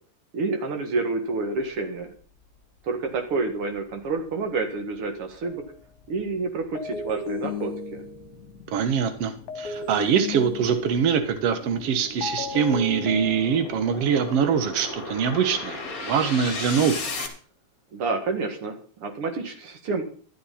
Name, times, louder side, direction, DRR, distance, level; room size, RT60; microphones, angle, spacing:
voice 1, 0.3-2.1 2.8-5.6 6.1-8.0 17.9-20.0, right 3 dB, 45° right, 6 dB, 2.3 m, -29 dB
sound 1, 2.6-2.7 3.1-17.3, left 3 dB, 30° left, 1.9 m, -38 dB
sound 2, 5.4-5.7 6.8-8.5 9.5-11.2 12.2-13.9, left 4 dB, 65° left, 2.2 m, -34 dB
voice 2, 8.7-17.1, right 7 dB, 80° right, 9 dB, 1.3 m, -23 dB
12.5 x 12.5 x 4.2 m, 0.43 s
omnidirectional pair, 4.3 m